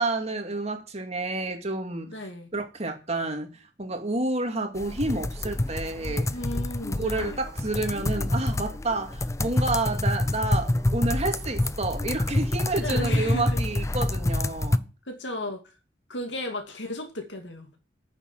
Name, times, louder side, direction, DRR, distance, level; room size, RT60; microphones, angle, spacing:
voice 1, 0.0-2.2 2.5-3.5 3.8-6.4 6.9-14.8, right 2 dB, 40° right, 2.3 m, -29 dB
voice 2, 2.1-2.5 6.3-7.4 12.8-13.6 15.1-15.6 16.1-17.8, left 1 dB, 85° left, 2.4 m, -34 dB
sound 1, 4.8-14.8, left 1 dB, 15° left, 0.5 m, -27 dB
10.0 x 7.1 x 8.9 m
head